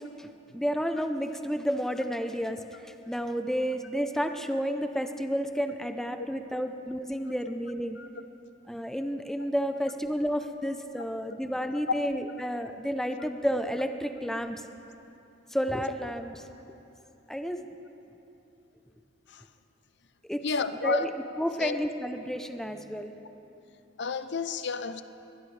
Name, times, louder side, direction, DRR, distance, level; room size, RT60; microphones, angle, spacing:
voice 1, 0.2-2.6 3.1-8.0 8.7-14.6 15.5-16.3 17.3-17.7 20.3-20.4 20.8-21.1 21.4-23.1, equal, ahead, 0.6 m, -31 dB
voice 2, 20.4-21.1 21.6-21.8 23.5-23.7 24.0-25.0, left 4 dB, 65° left, 0.6 m, -31 dB
22.0 x 20.0 x 3.3 m
head